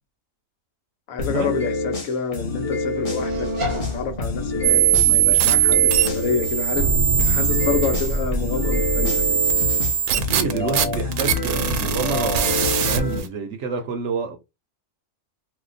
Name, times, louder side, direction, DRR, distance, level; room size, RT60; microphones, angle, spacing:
voice 1, 1.1-6.9 7.3-9.4, left 5 dB, 70° left, 1.1 m, -28 dB
sound 1, 1.2-6.5 7.2-13.2, left 3 dB, 30° left, 0.7 m, -27 dB
sound 2, 3.2-9.3, right 1 dB, 30° right, 0.6 m, -28 dB
sound 3, 4.6-13.3, right 10 dB, 85° right, 1.1 m, -21 dB
voice 2, 10.1-14.4, right 4 dB, 65° right, 0.8 m, -29 dB
2.7 x 2.2 x 3.8 m
omnidirectional pair, 1.5 m